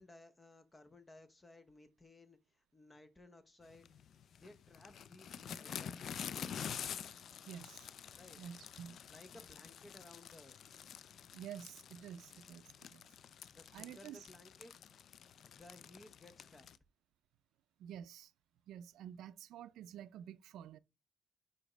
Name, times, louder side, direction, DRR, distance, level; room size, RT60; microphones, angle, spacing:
voice 1, 0.0-3.9 4.4-5.3 5.6-6.5 8.2-8.4 9.1-10.6 13.5-14.7 15.5-16.7, left 2 dB, 15° left, 0.7 m, -59 dB
sound 1, 3.7-16.8, left 8 dB, 55° left, 0.3 m, -48 dB
voice 2, 7.5-7.9 8.4-9.0 11.3-13.1 13.7-14.3 17.8-18.3 18.7-20.8, right 9 dB, 85° right, 0.3 m, -50 dB
5.1 x 4.2 x 4.9 m
cardioid pair, 145°, 0 cm